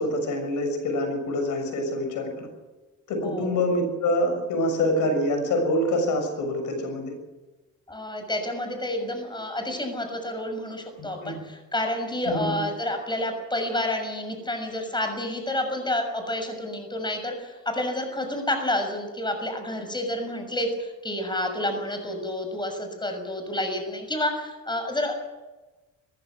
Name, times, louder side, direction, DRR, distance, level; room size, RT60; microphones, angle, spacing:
voice 1, 0.0-2.5 3.1-7.1 11.0-11.4 12.3-12.6, left 1 dB, 80° left, 5 dB, 6.7 m, -26 dB
voice 2, 3.2-3.6 7.9-25.1, left 1 dB, 15° left, 5 dB, 6.5 m, -29 dB
21.0 x 15.5 x 9.5 m, 1.1 s
cardioid pair, 90°, 30 cm